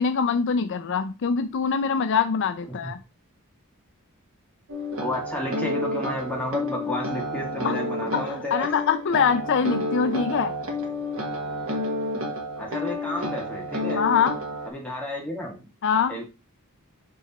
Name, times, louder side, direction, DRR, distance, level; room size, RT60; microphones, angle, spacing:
voice 1, 0.0-3.0 7.6-7.7 8.1-10.5 14.0-14.4 15.8-16.2, left 6 dB, 60° left, 0.4 m, -24 dB
sound 1, 4.7-14.7, left 1 dB, 70° right, 1.5 m, -30 dB
voice 2, 5.0-8.7 12.6-14.0 14.7-15.7 16.1-16.2, left 1 dB, 5° left, 2.0 m, -31 dB
6.2 x 4.1 x 4.2 m
head